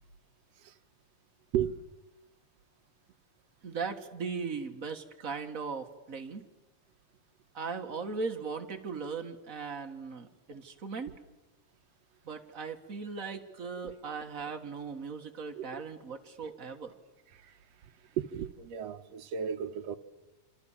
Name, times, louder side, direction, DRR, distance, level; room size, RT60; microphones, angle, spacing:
voice 1, 3.6-6.4 7.5-11.2 12.2-16.9, right 5 dB, 35° right, 1.6 m, -38 dB
voice 2, 18.2-20.0, right 9 dB, 65° right, 2.1 m, -34 dB
27.5 x 26.5 x 7.3 m
omnidirectional pair, 3.4 m